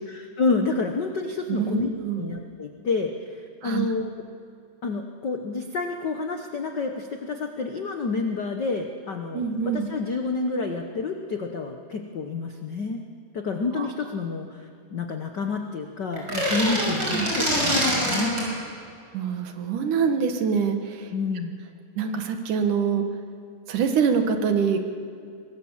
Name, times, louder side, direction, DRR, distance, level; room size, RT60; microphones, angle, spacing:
voice 1, 0.1-1.9 2.2-4.1 4.8-9.5 9.7-13.0 13.3-18.4 21.1-21.6, left 4 dB, 75° left, 4 dB, 0.9 m, -29 dB
voice 2, 1.5-2.3 3.6-3.9 9.3-9.9 13.8-13.9 16.8-17.3 19.1-21.1 22.0-23.0 23.7-24.9, right 6 dB, 75° right, 6 dB, 3.0 m, -25 dB
sound 1, 16.1-18.5, equal, 30° right, 6.4 m, -24 dB
24.0 x 20.0 x 7.3 m, 2.4 s
omnidirectional pair, 3.7 m